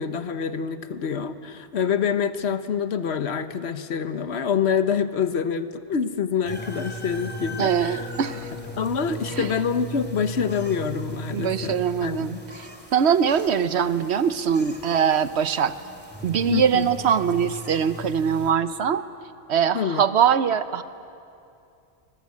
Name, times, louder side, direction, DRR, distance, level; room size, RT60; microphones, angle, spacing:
voice 1, 0.0-8.0 8.8-12.4 16.5-16.9 19.7-20.0, left 7 dB, 80° left, 11 dB, 1.3 m, -26 dB
sound 1, 6.4-18.5, equal, 10° left, 2.3 m, -38 dB
voice 2, 7.6-8.5 9.1-9.5 11.3-15.8 16.2-19.1 19.5-20.8, right 7 dB, 80° right, 13 dB, 1.1 m, -22 dB
24.5 x 21.0 x 8.4 m, 2.6 s
omnidirectional pair, 1.1 m